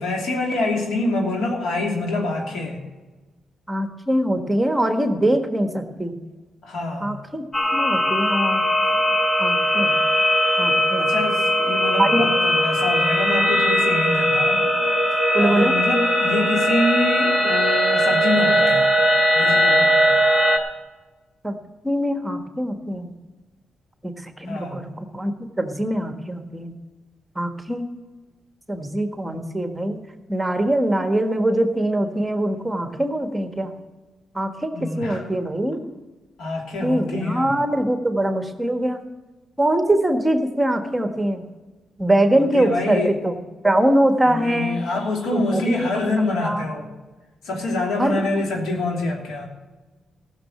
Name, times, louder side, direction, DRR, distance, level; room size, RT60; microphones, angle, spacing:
voice 1, 0.0-2.8 6.6-7.1 11.0-14.6 15.4-18.8 19.3-20.1 24.4-24.8 34.7-35.3 35.7-35.8 36.4-37.5 42.3-43.1 44.2-46.9 47.4-49.5, left 2 dB, 90° left, 0 dB, 2.9 m, -26 dB
voice 2, 3.7-6.2 7.0-7.4 7.7-8.6 9.4-9.9 10.6-11.1 12.0-12.3 15.3-15.7 21.4-21.5 21.8-23.1 24.0-25.3 25.6-26.7 27.3-27.9 28.7-30.0 30.3-33.7 34.3-35.8 36.8-39.0 39.6-41.4 42.0-43.4 43.6-44.8 45.3-46.0 46.4-46.6 48.0-48.2, right 1 dB, 10° right, 6 dB, 1.4 m, -22 dB
sound 1, 7.5-20.6, equal, 40° left, 2.0 m, -19 dB
14.5 x 6.6 x 7.6 m, 1.2 s
cardioid pair, 80°, 0 cm